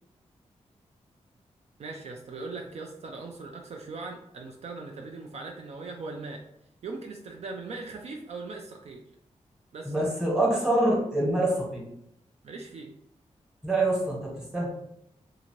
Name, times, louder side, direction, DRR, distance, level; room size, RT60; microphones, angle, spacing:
voice 1, 1.8-6.4 6.8-9.0 9.7-10.1 12.4-12.9, right 3 dB, 65° right, 2 dB, 0.4 m, -39 dB
voice 2, 9.8-11.8 13.6-14.7, right 1 dB, 5° right, -4 dB, 1.1 m, -25 dB
2.7 x 2.5 x 2.9 m, 0.75 s
wide cardioid pair, 140°, 12 cm